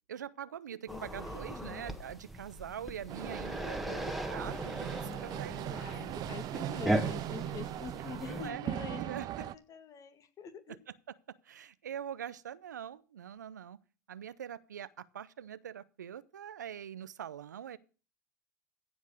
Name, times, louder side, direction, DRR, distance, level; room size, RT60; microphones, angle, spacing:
voice 1, 0.1-5.6 5.9-6.2 8.3-8.7 8.9-9.5 11.5-13.8 14.1-17.8, right 9 dB, 90° right, 0.6 m, -43 dB
voice 2, 0.9-1.8 5.0-10.8, left 7 dB, 40° left, 2.0 m, -46 dB
sound 1, 0.9-8.5, right 1 dB, ahead, 1.6 m, -38 dB
sound 2, 3.1-9.5, right 14 dB, 45° right, 0.6 m, -39 dB
15.5 x 5.4 x 6.3 m
hypercardioid pair, 90°, 9 cm